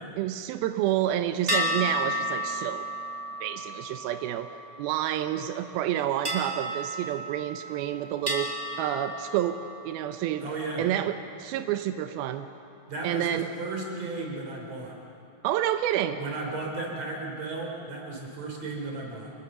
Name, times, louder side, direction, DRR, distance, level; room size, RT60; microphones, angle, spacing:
voice 1, 0.2-2.9 3.4-4.5 4.8-9.6 9.9-10.4 10.8-12.5 13.0-13.5 15.4-16.2, right 12 dB, 85° right, 8 dB, 2.2 m, -29 dB
sound 1, 1.5-5.2 6.2-7.8 8.3-9.9, equal, 20° right, 1.7 m, -32 dB
voice 2, 10.4-10.8 12.9-15.0 16.1-19.3, right 3 dB, 40° right, 0 dB, 4.5 m, -34 dB
26.0 x 20.0 x 6.8 m, 2.7 s
omnidirectional pair, 5.2 m